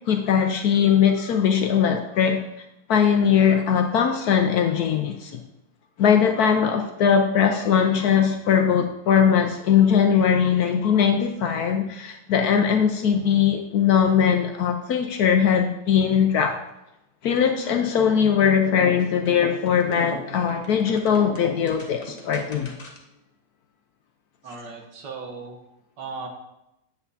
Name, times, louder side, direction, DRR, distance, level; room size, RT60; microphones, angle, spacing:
voice 1, 0.1-5.4 6.0-16.6 17.2-22.7, left 7 dB, 70° left, 5 dB, 1.0 m, -20 dB
sound 1, 18.6-23.2, left 2 dB, 30° left, 0.7 m, -38 dB
voice 2, 24.4-25.6 26.0-26.3, right 4 dB, 70° right, 2 dB, 1.8 m, -36 dB
8.3 x 7.9 x 2.7 m, 0.86 s
omnidirectional pair, 2.0 m